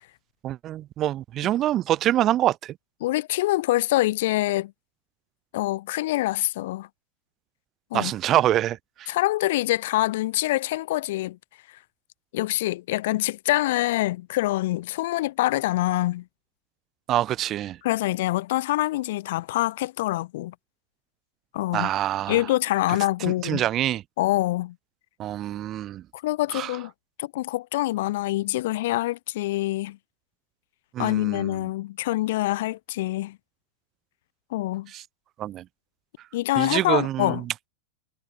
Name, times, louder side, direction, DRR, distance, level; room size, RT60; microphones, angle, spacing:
voice 1, 0.4-2.8 7.9-9.1 17.1-17.8 21.7-22.4 22.9-24.0 25.2-26.0 26.5-26.8 30.9-31.6 34.9-35.0 35.4-35.6 36.6-37.5, right 13 dB, 30° right, 0.4 m, -26 dB
voice 2, 3.0-4.7 5.5-6.9 7.9-8.1 9.1-11.4 12.3-16.2 17.8-20.5 21.5-21.9 22.3-23.6 24.2-24.7 26.1-26.9 27.2-30.0 31.0-33.4 34.5-34.9 36.3-37.4, left 17 dB, 55° left, 0.5 m, -25 dB
figure-of-eight pair, 90°, 0 cm